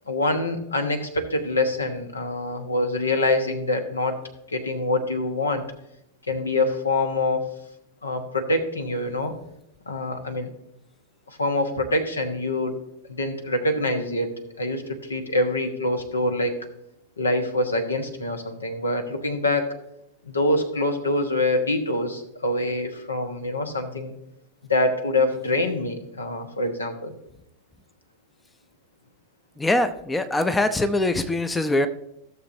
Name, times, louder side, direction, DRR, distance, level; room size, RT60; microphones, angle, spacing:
voice 1, 0.1-4.2 4.5-5.6 6.3-7.5 8.0-9.3 9.9-10.5 11.3-12.7 13.1-16.6 17.2-19.7 20.2-24.1 24.7-27.1, left 2 dB, 75° left, 7 dB, 1.2 m, -25 dB
voice 2, 29.6-31.9, left 2 dB, 10° left, 10 dB, 0.6 m, -23 dB
15.0 x 6.8 x 2.6 m, 0.81 s
figure-of-eight pair, 90°, 0 cm